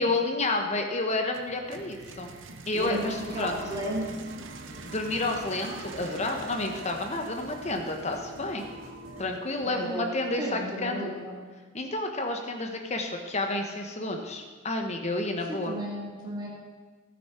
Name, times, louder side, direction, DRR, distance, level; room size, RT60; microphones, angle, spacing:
voice 1, 0.0-2.3 2.7-3.6 4.8-8.6 9.2-11.0 11.7-15.8, left 2 dB, 30° left, 4 dB, 1.2 m, -30 dB
sound 1, 1.3-9.1, right 4 dB, 60° right, 0.8 m, -47 dB
voice 2, 2.7-4.1 9.6-10.1 10.4-11.4 15.7-16.5, right 1 dB, 20° right, -6 dB, 2.5 m, -34 dB
sound 2, 2.7-9.2, right 1 dB, 90° right, 2.2 m, -44 dB
Speech, 3.1-4.7 5.3-9.3, right 1 dB, 40° right, 3.5 m, -50 dB
12.5 x 9.6 x 4.5 m, 1.4 s
head